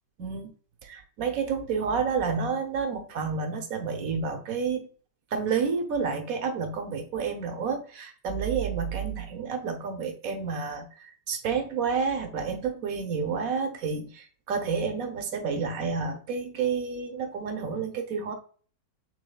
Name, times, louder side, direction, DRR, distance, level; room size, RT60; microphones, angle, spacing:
voice 1, 0.2-0.5 0.8-4.9 5.3-18.3, right 5 dB, 55° right, 5 dB, 1.2 m, -30 dB
6.6 x 3.5 x 2.3 m, 0.41 s
omnidirectional pair, 1.9 m